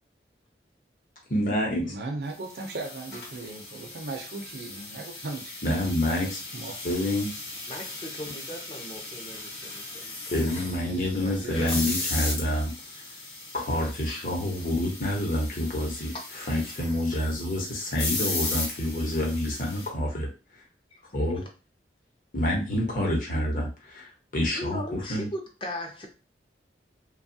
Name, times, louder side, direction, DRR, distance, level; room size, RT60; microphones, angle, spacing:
voice 1, 1.3-1.9 5.6-6.4 6.8-7.3 10.3-12.7 13.5-16.1 16.5-20.3 21.1-21.4 22.3-25.3, left 1 dB, 50° left, 0.9 m, -27 dB
voice 2, 1.8-5.6 6.5-6.8 10.8-12.1, right 2 dB, 65° right, 0.5 m, -37 dB
sound 1, 2.4-19.9, left 2 dB, 70° left, 1.0 m, -37 dB
voice 3, 7.7-10.3 11.6-11.7 16.1-16.2 20.9-21.0 24.5-26.1, left 1 dB, 30° left, 0.5 m, -38 dB
2.9 x 2.3 x 2.7 m
head